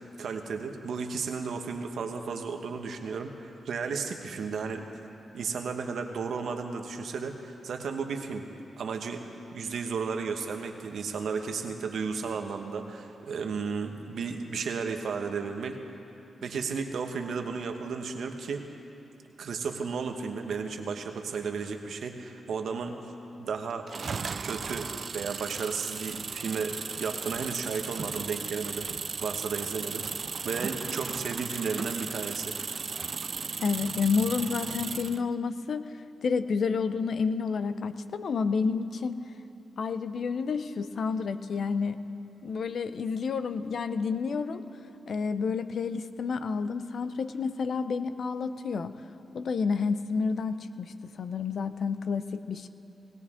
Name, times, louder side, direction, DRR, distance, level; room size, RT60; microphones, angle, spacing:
voice 1, 0.2-4.9 5.3-8.4 8.8-15.8 16.4-18.6 19.4-23.0 23.4-23.9 24.4-24.9 25.1-28.9 29.2-32.5, right 5 dB, 80° right, 5 dB, 1.1 m, -34 dB
sound 1, 23.9-35.3, right 5 dB, 55° right, 0.4 m, -36 dB
voice 2, 33.6-35.9 36.2-39.2 39.8-42.0 42.4-44.6 45.1-48.9 49.3-52.7, left 5 dB, 65° left, 11 dB, 0.6 m, -30 dB
19.0 x 17.0 x 3.7 m, 2.8 s
cardioid pair, 70°, 0 cm